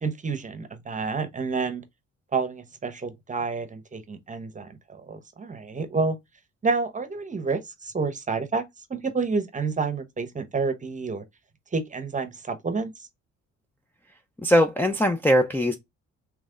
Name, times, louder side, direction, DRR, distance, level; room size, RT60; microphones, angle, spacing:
voice 1, 0.0-1.8 2.3-6.2 6.6-8.6 8.9-11.2 11.7-13.1, right 4 dB, 25° right, 0.9 m, -29 dB
voice 2, 14.4-15.8, equal, 5° left, 0.5 m, -20 dB
3.4 x 3.1 x 3.7 m
cardioid pair, 90°, 30 cm